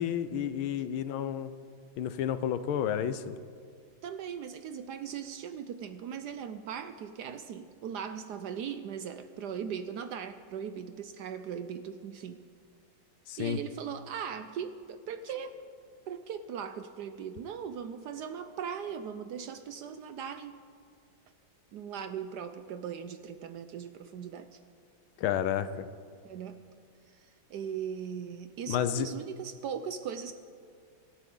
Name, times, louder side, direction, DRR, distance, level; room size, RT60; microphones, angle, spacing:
voice 1, 0.0-1.5 2.0-3.4 13.3-13.6 25.2-25.9 28.7-29.1, left 9 dB, 85° left, 12 dB, 1.5 m, -31 dB
voice 2, 4.0-12.4 13.4-15.6 16.1-20.6 21.7-24.6 26.2-26.6 27.1-30.3, right 7 dB, 70° right, 10 dB, 1.0 m, -39 dB
25.5 x 12.0 x 3.8 m, 2.1 s
omnidirectional pair, 2.2 m